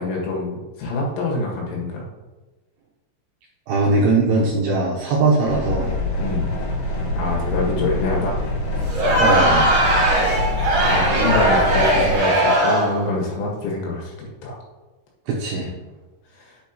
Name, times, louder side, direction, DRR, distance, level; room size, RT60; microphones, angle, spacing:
voice 1, 0.0-2.1 6.2-6.5 7.2-8.4 10.8-14.6, left 3 dB, 75° left, -2 dB, 4.2 m, -26 dB
voice 2, 3.7-5.9 9.2-9.7 15.3-15.7, right 3 dB, 75° right, -3 dB, 2.5 m, -20 dB
sound 1, 5.5-12.2, left 1 dB, 60° left, 2.6 m, -25 dB
Crowd, 8.9-13.0, right 1 dB, 45° right, 2.3 m, -18 dB
8.9 x 8.9 x 3.0 m, 1.2 s
omnidirectional pair, 5.7 m